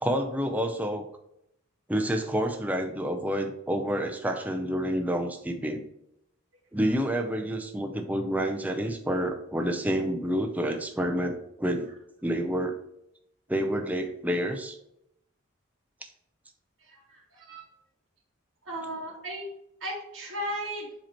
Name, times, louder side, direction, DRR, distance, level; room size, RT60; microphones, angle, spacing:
voice 1, 0.0-1.0 1.9-5.8 6.7-11.9 12.2-12.8 13.5-14.8, equal, 5° right, 3 dB, 0.5 m, -28 dB
voice 2, 16.8-17.6 18.6-19.5 19.8-20.9, equal, 70° right, -6 dB, 1.6 m, -36 dB
7.7 x 2.9 x 4.3 m, 0.78 s
head